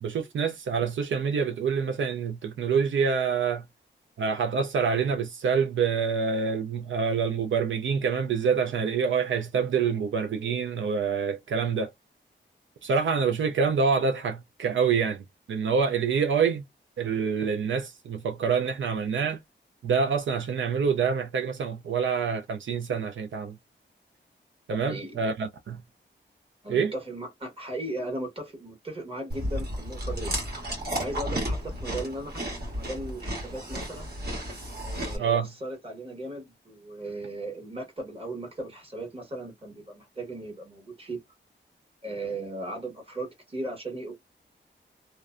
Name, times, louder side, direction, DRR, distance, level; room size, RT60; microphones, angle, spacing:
voice 1, 0.0-3.6 4.2-11.9 12.8-16.6 17.0-19.4 19.8-23.6 24.7-25.8 26.7-26.9 35.2-35.5, right 6 dB, 80° right, 0.4 m, -26 dB
voice 2, 24.7-25.2 26.6-30.4 31.0-34.1 34.8-41.2 42.0-44.1, right 1 dB, 30° right, 1.3 m, -37 dB
Chewing mastication, 29.3-35.2, equal, 55° right, 1.4 m, -33 dB
2.5 x 2.1 x 2.4 m
wide cardioid pair, 105°, 20 cm